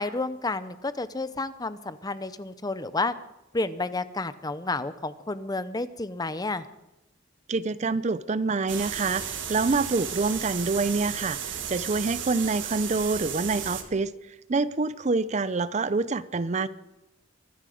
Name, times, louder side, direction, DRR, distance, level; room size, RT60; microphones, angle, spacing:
voice 1, 0.0-3.1 3.5-6.6, left 3 dB, 20° left, 13 dB, 0.7 m, -30 dB
voice 2, 7.5-16.7, right 3 dB, 35° right, 16 dB, 0.5 m, -27 dB
sound 1, 8.7-13.8, right 8 dB, 70° right, 1.7 m, -34 dB
24.0 x 11.5 x 5.0 m, 0.93 s
head